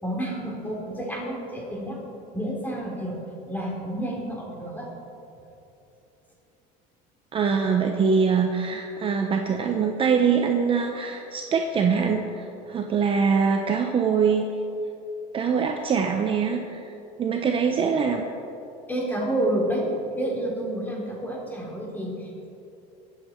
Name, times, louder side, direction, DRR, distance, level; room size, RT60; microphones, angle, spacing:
voice 1, 0.0-2.0 2.3-3.1 3.5-4.9 18.9-19.8 20.1-22.5, right 1 dB, 10° left, -3 dB, 3.7 m, -29 dB
voice 2, 7.3-14.4 15.3-16.9 17.2-18.2, right 6 dB, 30° right, 3 dB, 0.8 m, -23 dB
22.5 x 7.7 x 4.6 m, 2.8 s
cardioid pair, 130°, 18 cm